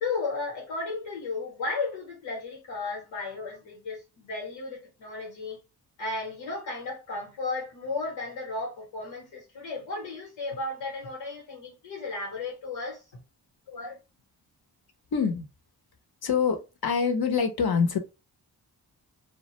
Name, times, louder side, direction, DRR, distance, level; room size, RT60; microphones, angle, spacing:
voice 1, 0.0-5.6 6.0-13.0, left 3 dB, 85° left, 1.1 m, -34 dB
voice 2, 13.7-14.0 15.1-15.5 16.2-18.0, left 6 dB, 55° left, 0.8 m, -26 dB
2.3 x 2.1 x 2.9 m
supercardioid pair, 40°, 45 cm